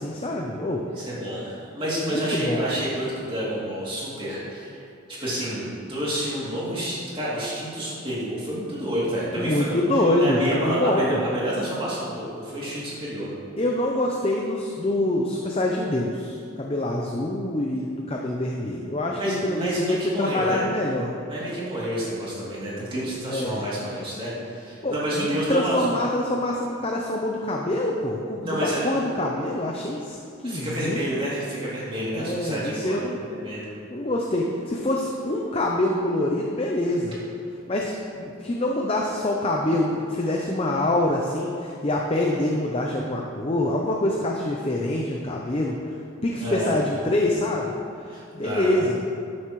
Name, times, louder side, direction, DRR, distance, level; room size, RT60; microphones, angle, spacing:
voice 1, 0.0-0.8 2.0-2.6 9.4-11.2 13.6-21.2 23.3-23.7 24.8-30.2 30.4-31.0 32.1-33.2 33.9-37.2 37.7-47.7 48.3-49.0, left 1 dB, 30° left, 0 dB, 0.6 m, -25 dB
voice 2, 0.9-4.8 5.1-9.7 10.2-13.3 19.1-20.6 21.3-25.9 28.4-29.0 30.4-33.7 42.8-43.0 46.4-46.7 48.1-48.7, equal, 25° right, -8 dB, 2.8 m, -29 dB
12.5 x 9.5 x 3.1 m, 2.5 s
head